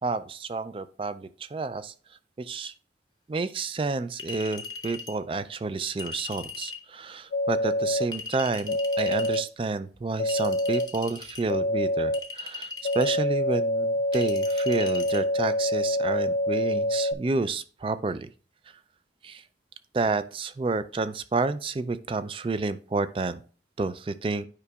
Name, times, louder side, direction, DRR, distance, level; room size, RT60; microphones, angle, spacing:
voice 1, 0.0-1.9 2.4-2.7 3.3-12.7 12.9-18.3 19.2-19.4 19.9-23.4 23.8-24.5, right 3 dB, 30° right, 13 dB, 0.3 m, -30 dB
Chink clink, 4.2-5.2 6.0-6.8 8.1-9.4 10.3-11.4 12.1-13.2 14.1-15.2, left 4 dB, 20° left, 0.7 m, -39 dB
sound 1, 7.3-8.0 8.7-9.4 10.2-10.9 11.5-12.2 12.8-17.1, left 1 dB, 90° left, 0.5 m, -26 dB
9.7 x 4.9 x 2.3 m, 0.39 s
head